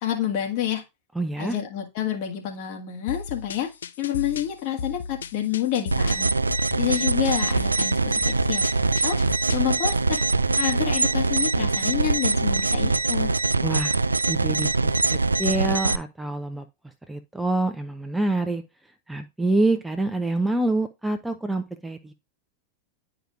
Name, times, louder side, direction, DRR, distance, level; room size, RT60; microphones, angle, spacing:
voice 1, 0.0-0.8 1.4-3.7 4.0-6.3 6.8-8.7 9.0-9.2 9.5-10.2 10.6-13.3, left 11 dB, 50° left, 3 dB, 1.6 m, -28 dB
voice 2, 1.2-1.6 13.6-14.0 14.3-16.7 17.1-18.6 19.1-22.1, right 2 dB, 5° right, 7 dB, 0.6 m, -26 dB
sound 1, 3.1-9.8, left 5 dB, 65° left, 0.4 m, -35 dB
sound 2, 5.9-16.0, right 3 dB, 80° right, 0.3 m, -23 dB
10.0 x 4.9 x 2.4 m, 0.24 s
figure-of-eight pair, 90°, 0 cm